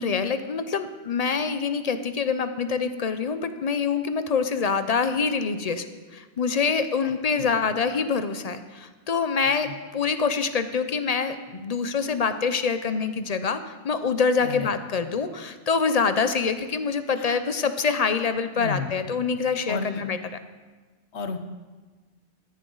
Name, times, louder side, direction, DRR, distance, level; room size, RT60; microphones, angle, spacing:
voice 1, 0.0-5.8 6.1-20.2, left 5 dB, 45° left, 10 dB, 0.6 m, -25 dB
voice 2, 14.4-14.7 17.2-17.4 18.6-18.9 19.7-20.1 21.1-21.4, left 4 dB, 80° left, 8 dB, 1.2 m, -32 dB
14.0 x 10.5 x 3.9 m, 1.3 s
omnidirectional pair, 1.1 m